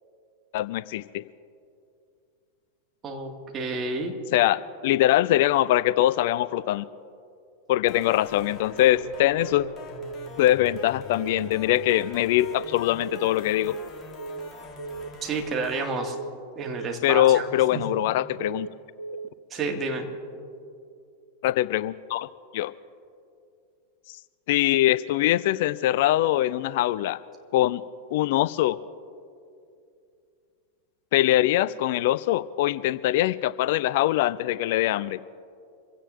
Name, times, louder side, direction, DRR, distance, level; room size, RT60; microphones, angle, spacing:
voice 1, 0.5-1.2 4.3-6.8 7.7-9.7 10.4-13.8 17.0-18.7 21.4-22.3 22.5-22.7 24.5-27.2 27.5-27.8 28.1-28.8 31.1-35.2, left 14 dB, 50° left, 18 dB, 0.3 m, -23 dB
voice 2, 3.0-4.1 15.2-16.2 16.6-17.5 17.7-17.9 19.5-20.1, right 3 dB, 25° right, 2 dB, 2.0 m, -30 dB
sound 1, 7.9-15.9, left 4 dB, 20° left, 1.8 m, -43 dB
Telephone, 8.8-9.1 9.4-9.7 10.0-10.3 10.6-10.9 11.2-11.5 11.8-12.1 12.4-12.7 13.0-13.3 13.6-13.9 14.2-14.5 14.8-15.1 15.4-15.7 16.0-16.3 16.6-16.9 17.2-17.5 17.8-18.1 18.4-18.7 19.0-19.3 19.6-19.9, right 4 dB, 80° right, 0.3 m, -37 dB
26.0 x 16.0 x 2.6 m, 2.5 s
figure-of-eight pair, 90°, 0 cm